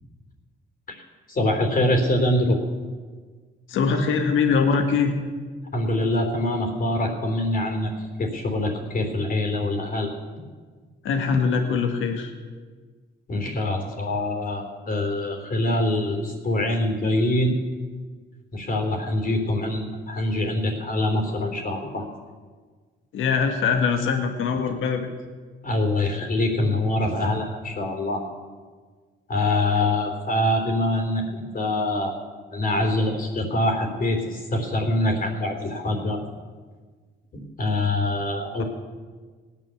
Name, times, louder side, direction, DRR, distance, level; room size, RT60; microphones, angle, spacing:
voice 1, 1.3-2.6 5.7-7.9 8.2-10.1 13.3-17.5 18.5-22.1 25.6-28.2 29.3-32.1 32.5-36.2 37.3-38.6, left 1 dB, 45° left, 4 dB, 3.7 m, -24 dB
voice 2, 3.7-5.1 11.0-12.3 23.1-25.1, left 5 dB, 80° left, 5 dB, 1.7 m, -22 dB
18.0 x 9.9 x 7.1 m, 1.5 s
cardioid pair, 90°, 20 cm